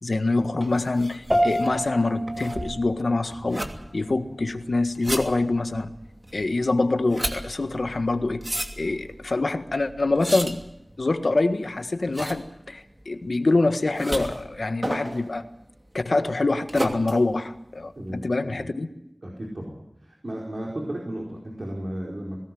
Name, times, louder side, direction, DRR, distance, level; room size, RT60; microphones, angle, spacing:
voice 1, 0.0-3.6 3.9-5.9 6.3-8.4 8.8-10.6 11.0-15.4 15.9-18.9, left 2 dB, 75° left, 9 dB, 1.6 m, -25 dB
sound 1, 0.6-18.2, right 1 dB, 25° right, 2.7 m, -35 dB
sound 2, 1.3-10.9, equal, ahead, 4.1 m, -33 dB
voice 2, 17.9-18.7 19.2-19.8 20.0-22.4, right 1 dB, 60° right, -2 dB, 4.8 m, -34 dB
21.0 x 18.0 x 7.9 m, 0.84 s
wide cardioid pair, 55°, 0 cm